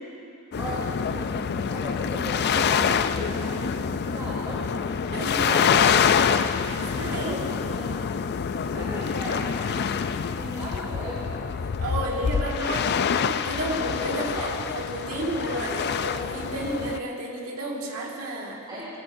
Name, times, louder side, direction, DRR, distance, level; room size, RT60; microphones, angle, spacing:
sound 1, 0.5-17.0, left 7 dB, 50° left, 0.4 m, -26 dB
voice 1, 0.6-4.6 5.1-6.0 6.7-7.9 8.5-11.2 11.9-12.7 14.3-14.4 18.7-18.9, equal, 20° right, -10 dB, 3.2 m, -37 dB
voice 2, 5.1-5.7 6.6-7.4 11.8-14.5 14.7-18.8, right 1 dB, 70° right, -2 dB, 2.1 m, -32 dB
22.0 x 16.0 x 2.6 m, 2.6 s
head